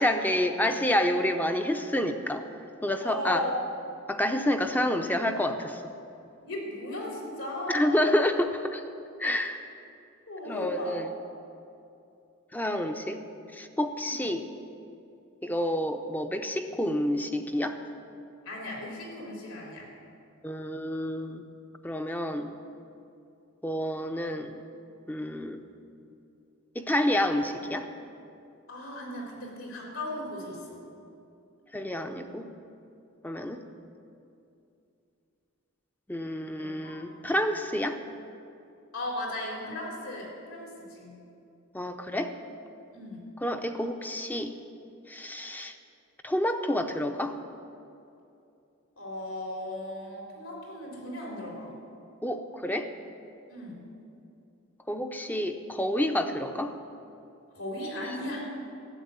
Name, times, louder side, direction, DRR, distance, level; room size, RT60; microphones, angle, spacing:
voice 1, 0.0-2.5 2.8-3.4 4.1-5.8 7.7-8.8 9.2-9.6 10.5-11.1 12.5-13.2 13.5-14.5 15.4-17.8 20.4-21.5 21.8-22.6 23.6-24.6 25.1-25.6 26.8-27.9 31.7-32.5 33.2-33.6 36.1-38.0 41.7-42.3 43.4-44.5 45.1-45.8 46.2-47.4 52.2-52.9 54.9-56.8, left 1 dB, 10° left, 7 dB, 0.6 m, -29 dB
voice 2, 3.0-3.6 6.4-8.0 10.3-11.0 14.0-14.3 18.5-19.9 28.7-30.8 36.6-37.3 38.9-41.2 42.9-43.2 49.0-51.7 53.5-53.8 57.5-58.4, left 1 dB, 75° left, -3 dB, 4.0 m, -37 dB
13.0 x 8.1 x 9.7 m, 2.6 s
head